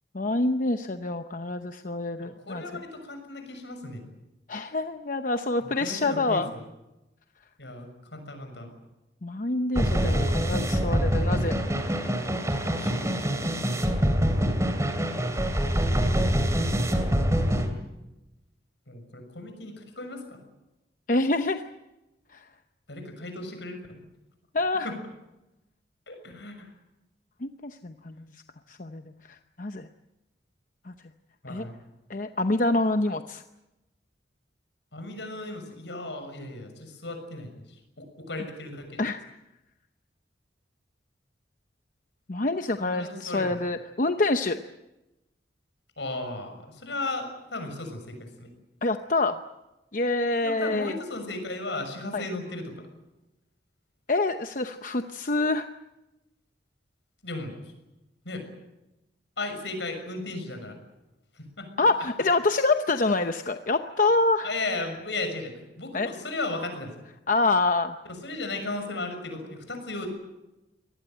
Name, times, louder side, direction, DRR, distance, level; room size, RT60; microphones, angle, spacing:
voice 1, 0.1-2.6 4.5-6.5 9.2-11.6 21.1-21.6 22.3-22.5 24.5-24.9 27.4-28.3 28.7-29.0 29.3-29.9 30.9-31.0 31.5-31.7 32.1-33.4 39.0-39.2 42.3-44.6 48.8-49.4 49.9-51.0 52.1-52.2 54.1-55.7 61.8-64.5 65.9-66.1 67.3-68.0, left 2 dB, 45° left, 8 dB, 0.8 m, -26 dB
voice 2, 2.2-4.0 5.6-6.7 7.6-8.7 12.7-13.5 18.9-20.4 22.9-24.0 24.8-25.0 26.1-26.7 31.4-31.8 34.9-39.1 42.8-43.5 46.0-48.5 50.4-52.8 57.2-57.6 58.2-58.4 59.4-60.8 61.3-61.9 64.4-66.9 68.1-70.1, left 2 dB, 75° left, 6 dB, 6.5 m, -36 dB
sound 1, 9.7-17.7, equal, 15° right, 2.9 m, -25 dB
24.0 x 19.0 x 9.1 m, 0.98 s
head